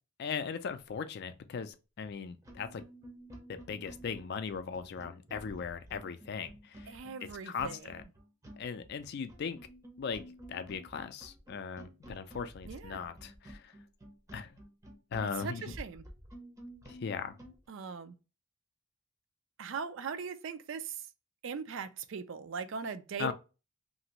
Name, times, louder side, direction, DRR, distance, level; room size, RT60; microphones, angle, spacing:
voice 1, 0.2-2.9 3.5-6.9 7.4-8.0 8.6-9.6 10.0-10.2 10.5-13.7 14.3-14.5 15.1-15.7 16.9-17.3 23.2-23.3, left 6 dB, 50° left, 0.3 m, -38 dB
sound 1, 2.0-2.1 2.4-17.6, equal, 15° right, 0.6 m, -51 dB
voice 2, 6.9-7.9 12.7-13.0 15.2-16.1 17.7-18.1 19.6-21.0 21.4-23.3, right 6 dB, 65° right, 0.4 m, -40 dB
2.8 x 2.6 x 2.9 m
head